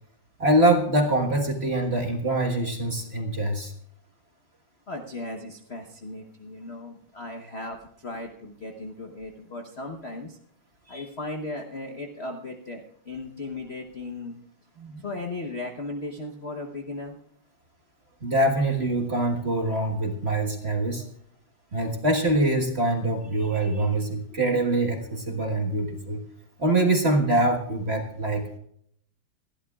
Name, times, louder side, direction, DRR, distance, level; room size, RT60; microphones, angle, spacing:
voice 1, 0.4-3.7 10.9-11.0 14.8-15.0 18.2-21.0 21.7-26.2 26.6-28.5, right 1 dB, 35° right, 1 dB, 1.5 m, -24 dB
voice 2, 4.9-10.4 10.9-14.4 15.0-17.2, left 2 dB, 45° left, 2 dB, 0.9 m, -36 dB
28.0 x 11.5 x 2.4 m, 0.66 s
omnidirectional pair, 2.4 m